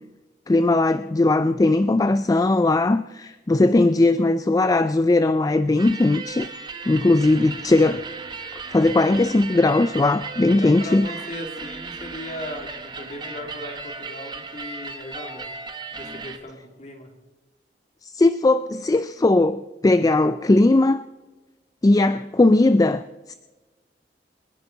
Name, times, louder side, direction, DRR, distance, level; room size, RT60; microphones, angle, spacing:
voice 1, 0.5-6.5 6.9-8.0 8.7-11.1 18.0-21.0 21.8-23.3, left 2 dB, 20° left, 0.4 m, -19 dB
sound 1, 5.8-16.4, right 4 dB, 25° right, 1.1 m, -36 dB
voice 2, 10.4-12.7 13.0-15.5 15.9-17.1, left 1 dB, 40° left, 2.9 m, -37 dB
27.0 x 10.5 x 4.0 m
head